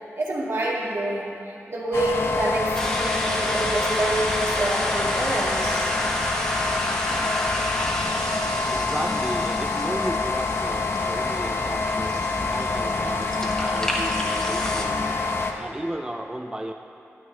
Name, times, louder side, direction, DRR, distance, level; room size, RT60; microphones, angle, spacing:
voice 1, 0.2-5.9 7.0-7.3 8.7-8.9 14.9-15.2, right 1 dB, 60° right, -4 dB, 1.9 m, -28 dB
sound 1, 1.9-15.5, left 3 dB, 55° left, 0.8 m, -26 dB
sound 2, 2.7-14.8, equal, 15° left, 1.2 m, -31 dB
voice 2, 8.7-15.2 15.5-16.7, right 1 dB, 15° right, 3 dB, 0.4 m, -34 dB
12.5 x 10.5 x 3.3 m, 2.7 s
wide cardioid pair, 110°, 5 cm